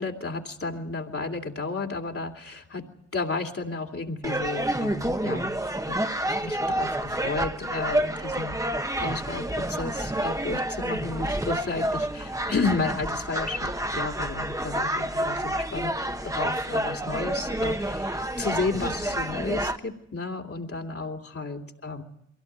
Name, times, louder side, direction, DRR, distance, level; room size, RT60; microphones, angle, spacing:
voice 1, 0.0-2.8 3.1-5.5 5.9-6.0 6.4-15.9 16.2-22.0, left 3 dB, 50° left, 0 dB, 2.7 m, -32 dB
sound 1, 4.2-19.8, right 1 dB, 10° right, 1.3 m, -29 dB
23.0 x 17.0 x 9.3 m, 0.76 s
cardioid pair, 50°, 29 cm